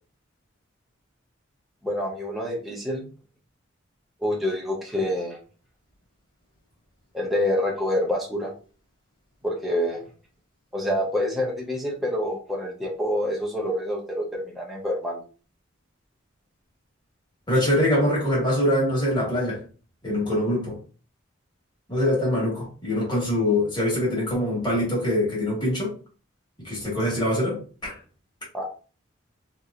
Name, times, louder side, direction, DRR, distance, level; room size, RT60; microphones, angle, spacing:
voice 1, 1.8-3.0 4.2-5.4 7.1-8.5 9.4-10.0 10.7-15.2 28.5-28.7, left 1 dB, ahead, 0.7 m, -27 dB
voice 2, 17.5-19.6 20.0-20.8 21.9-25.9 26.6-28.0, left 1 dB, 20° left, 1.6 m, -24 dB
3.0 x 2.9 x 2.5 m
head